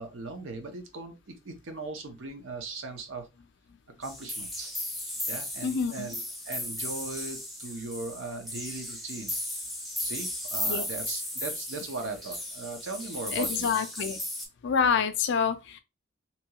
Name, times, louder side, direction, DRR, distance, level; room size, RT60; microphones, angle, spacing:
voice 1, 0.0-3.3 4.0-4.7 5.3-9.3 10.0-13.7, right 3 dB, 65° right, 0.7 m, -38 dB
sound 1, 4.0-14.5, left 1 dB, ahead, 0.5 m, -35 dB
voice 2, 5.6-6.1 10.6-10.8 13.3-14.2 14.6-15.8, left 6 dB, 60° left, 0.4 m, -27 dB
2.8 x 2.3 x 2.8 m
head